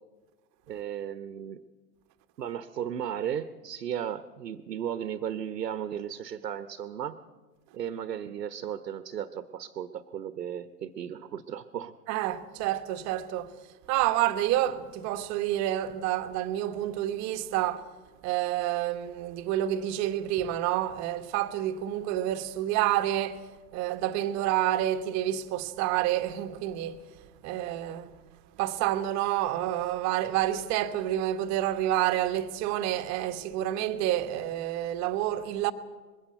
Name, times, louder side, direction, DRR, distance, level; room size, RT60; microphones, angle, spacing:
voice 1, 0.7-1.6 2.4-7.2 7.7-11.9, right 9 dB, 70° right, 1.1 m, -35 dB
voice 2, 12.1-13.5 13.9-17.8 18.2-23.4 23.7-27.0 27.4-28.1 28.6-35.7, right 13 dB, 35° right, 1.2 m, -28 dB
21.0 x 15.5 x 8.1 m
figure-of-eight pair, 100°, 49 cm